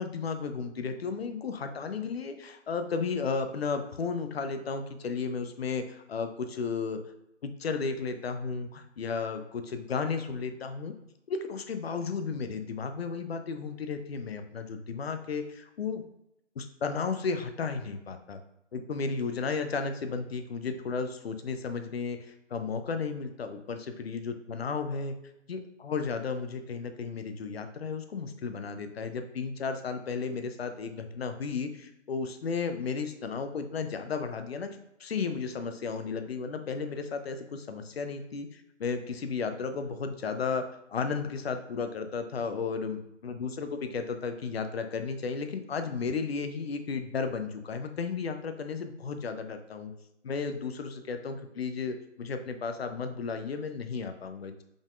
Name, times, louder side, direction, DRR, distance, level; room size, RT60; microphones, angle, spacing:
voice 1, 0.0-7.0 7.4-10.9 11.3-16.1 16.6-18.4 18.7-25.1 25.5-49.9 50.2-54.6, left 5 dB, 55° left, 8 dB, 0.6 m, -34 dB
5.2 x 3.7 x 2.4 m, 0.84 s
figure-of-eight pair, 155°, 36 cm